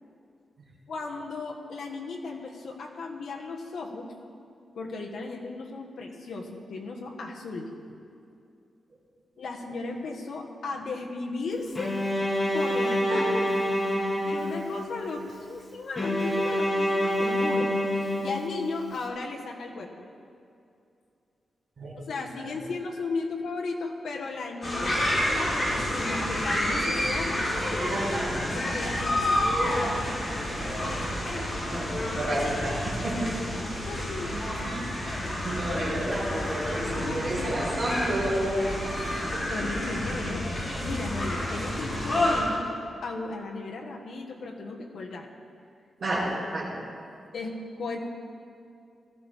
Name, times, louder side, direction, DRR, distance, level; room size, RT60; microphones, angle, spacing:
voice 1, 0.9-4.1 4.7-7.7 9.4-12.0 12.5-13.3 14.2-17.7 18.2-20.0 22.1-27.4 28.5-29.4 33.5-34.4 35.7-36.0 37.0-37.7 39.5-40.5 40.8-45.3 47.3-48.0, left 3 dB, 70° left, 0 dB, 1.5 m, -35 dB
Bowed string instrument, 11.8-15.0 16.0-18.9, equal, 15° left, 1.7 m, -27 dB
voice 2, 21.8-22.1 27.9-28.4 30.5-30.7 31.0-33.3 34.3-34.7 35.1-38.9 46.0-46.7, right 1 dB, 45° right, -5 dB, 4.2 m, -31 dB
sound 1, 24.6-42.4, left 1 dB, 35° left, 4.0 m, -29 dB
17.5 x 13.5 x 3.7 m, 2.5 s
wide cardioid pair, 170°, 0 cm